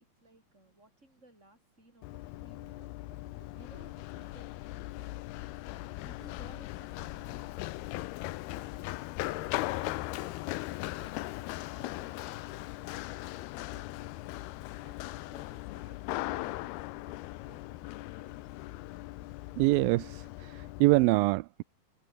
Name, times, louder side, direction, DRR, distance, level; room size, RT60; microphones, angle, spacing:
voice 1, 0.0-3.0 3.3-5.1 5.7-8.2 8.5-10.5 10.8-11.1 11.4-18.4, right 1 dB, 15° right, 8.3 m, -59 dB
Run, 2.0-21.1, left 18 dB, 80° left, 2.8 m, -39 dB
voice 2, 19.6-21.6, right 22 dB, 85° right, 2.1 m, -25 dB
omnidirectional pair, 4.6 m